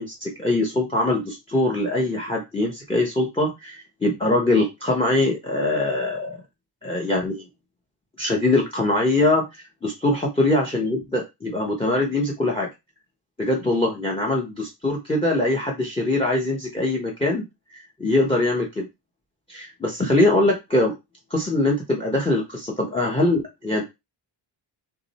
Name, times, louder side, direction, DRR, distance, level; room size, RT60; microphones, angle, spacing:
voice 1, 0.0-6.4 6.8-7.4 8.2-9.4 9.8-12.7 13.4-17.5 17.7-18.9 19.5-20.9 21.3-23.8, left 2 dB, 10° left, 1 dB, 1.0 m, -22 dB
3.7 x 3.3 x 4.2 m, 0.23 s
wide cardioid pair, 145°, 46 cm